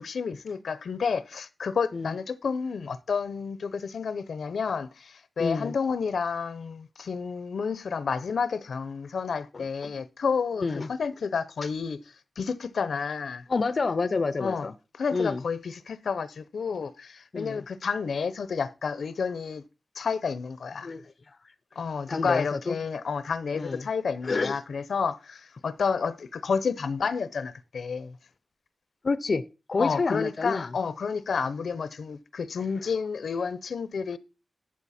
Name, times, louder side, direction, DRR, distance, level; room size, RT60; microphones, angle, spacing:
voice 1, 0.0-12.0 12.4-13.4 14.4-14.7 15.0-19.6 19.9-20.9 21.8-28.2 29.8-34.2, left 5 dB, 85° left, 0.7 m, -30 dB
voice 2, 5.4-5.7 9.5-9.9 10.6-10.9 13.5-14.7 15.1-15.4 17.3-17.6 20.8-21.4 22.1-22.8 23.5-23.9 24.2-24.6 29.0-29.4 29.7-30.7 32.8-32.9, left 4 dB, 45° left, 0.5 m, -28 dB
13.0 x 7.6 x 4.2 m
wide cardioid pair, 145°, 0 cm